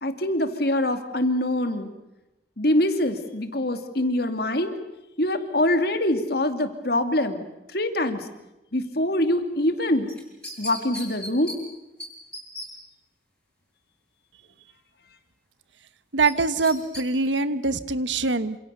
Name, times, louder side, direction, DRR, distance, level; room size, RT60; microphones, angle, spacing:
voice 1, 0.0-1.9 2.6-4.7 5.2-8.3 8.7-10.1 10.6-11.5, left 1 dB, 55° left, 8 dB, 2.5 m, -24 dB
sound 1, 10.1-11.6 12.0-12.1 12.3-12.7 16.2-17.0 17.4-17.5, left 1 dB, 5° left, 6.5 m, -36 dB
voice 2, 16.1-18.6, right 3 dB, 80° right, 13 dB, 1.3 m, -23 dB
27.5 x 27.0 x 6.8 m, 0.94 s
head